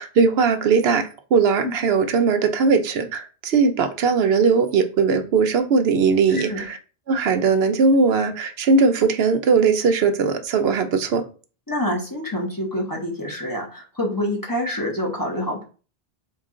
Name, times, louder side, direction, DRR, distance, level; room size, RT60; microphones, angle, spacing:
voice 1, 0.0-6.8 7.1-11.2, right 5 dB, 80° right, 7 dB, 0.9 m, -19 dB
voice 2, 6.3-6.6 11.7-15.6, left 1 dB, 20° left, -2 dB, 0.9 m, -27 dB
4.6 x 2.4 x 3.7 m, 0.36 s
omnidirectional pair, 1.0 m